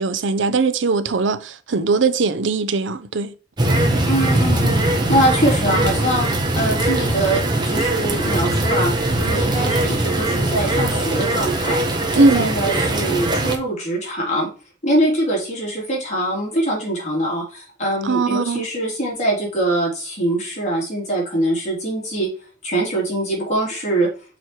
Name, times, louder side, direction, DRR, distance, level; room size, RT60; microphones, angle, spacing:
voice 1, 0.0-3.3 12.2-12.5 18.0-18.7, right 3 dB, 80° right, 0.7 m, -20 dB
sound 1, 3.6-13.6, right 1 dB, 25° right, 1.2 m, -20 dB
voice 2, 4.1-7.4 7.6-11.8 12.2-14.5 14.8-22.3 22.6-24.1, right 1 dB, 40° left, 3.4 m, -23 dB
6.2 x 4.9 x 4.5 m
head